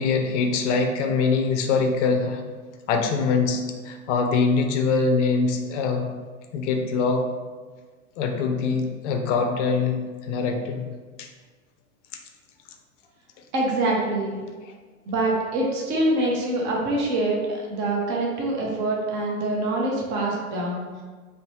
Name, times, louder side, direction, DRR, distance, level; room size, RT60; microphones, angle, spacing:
voice 1, 0.0-2.4 2.9-6.1 6.5-7.3 8.2-10.0 10.3-10.9 11.2-11.3, left 4 dB, 55° left, 4 dB, 0.5 m, -23 dB
voice 2, 13.5-14.3 15.1-20.9, right 2 dB, 25° right, -3 dB, 0.5 m, -25 dB
2.6 x 2.0 x 3.0 m, 1.4 s
hypercardioid pair, 120°, 44 cm